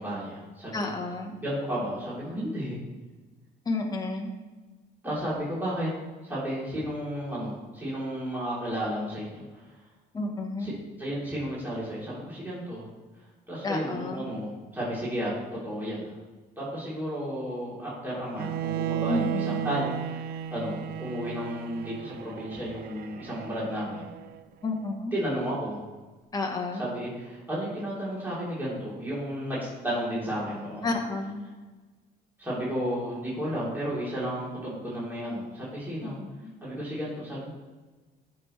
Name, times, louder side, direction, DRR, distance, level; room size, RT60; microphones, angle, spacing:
voice 1, 0.0-0.9 1.4-2.8 5.0-5.9 6.2-9.6 10.6-10.7 11.0-12.9 13.5-15.3 15.6-16.1 16.6-24.1 25.1-25.8 26.8-30.9 32.4-36.2 36.6-37.5, equal, 10° right, -8 dB, 3.6 m, -33 dB
voice 2, 0.7-1.4 3.6-4.3 10.1-10.7 13.6-14.3 19.1-19.7 24.6-25.1 26.3-26.8 30.8-31.4 36.0-36.5, left 2 dB, 20° left, 1 dB, 1.3 m, -31 dB
Bowed string instrument, 18.4-24.4, right 10 dB, 60° right, 0.4 m, -34 dB
16.0 x 6.1 x 3.3 m, 1.3 s
cardioid pair, 145°, 18 cm